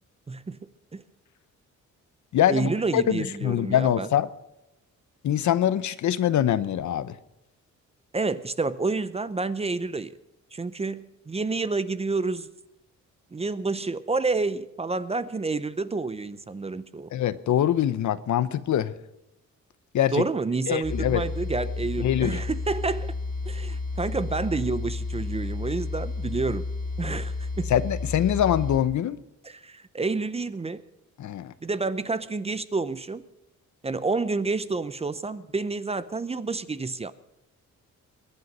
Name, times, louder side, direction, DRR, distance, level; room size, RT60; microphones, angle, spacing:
voice 1, 0.3-0.6 0.9-1.0 2.5-4.1 8.1-10.1 10.5-12.5 13.3-17.1 20.1-23.1 23.5-26.7 27.0-27.7 29.4-30.8 31.6-33.2 33.8-37.1, right 3 dB, 20° right, 0.6 m, -29 dB
voice 2, 2.3-4.3 5.2-7.1 17.1-18.9 19.9-20.2 20.7-21.2 22.0-22.4 27.7-29.2 31.2-31.5, left 11 dB, 70° left, 0.8 m, -24 dB
sound 1, 20.8-28.8, left 3 dB, 25° left, 2.4 m, -31 dB
22.5 x 9.5 x 5.4 m
cardioid pair, 130°, 30 cm